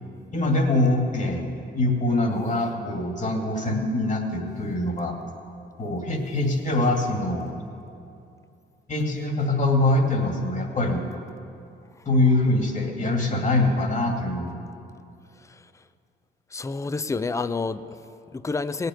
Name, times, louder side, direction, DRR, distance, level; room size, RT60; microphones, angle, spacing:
voice 1, 0.3-5.2 5.8-7.5 8.9-11.0 12.1-14.6, left 2 dB, 40° left, 2 dB, 2.2 m, -23 dB
voice 2, 15.4-15.9 16.5-18.9, left 4 dB, 15° left, 13 dB, 0.5 m, -30 dB
17.5 x 6.8 x 9.2 m, 2.5 s
cardioid pair, 90°, 20 cm